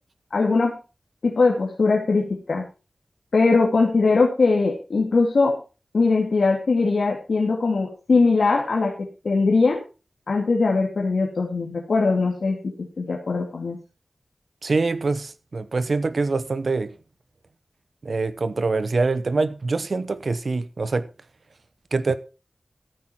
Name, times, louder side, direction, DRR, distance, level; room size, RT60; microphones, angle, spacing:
voice 1, 0.3-0.8 1.2-2.7 3.3-5.6 5.9-8.9 9.2-9.8 10.3-13.8, left 3 dB, 85° left, 2.2 m, -21 dB
voice 2, 14.6-17.0 18.0-21.1 21.9-22.1, right 3 dB, 70° right, 0.9 m, -24 dB
14.5 x 8.8 x 4.4 m
wide cardioid pair, 80°, 0 cm